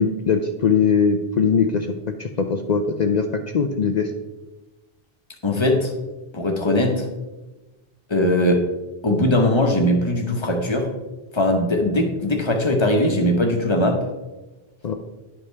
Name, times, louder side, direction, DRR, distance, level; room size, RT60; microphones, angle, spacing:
voice 1, 0.0-4.1 14.8-14.9, left 5 dB, 50° left, 5 dB, 0.6 m, -21 dB
voice 2, 5.4-5.9 6.3-7.1 8.1-8.7 9.0-10.9 11.3-14.1, left 1 dB, 30° left, 3 dB, 1.0 m, -20 dB
11.0 x 5.3 x 3.3 m, 1.1 s
omnidirectional pair, 1.0 m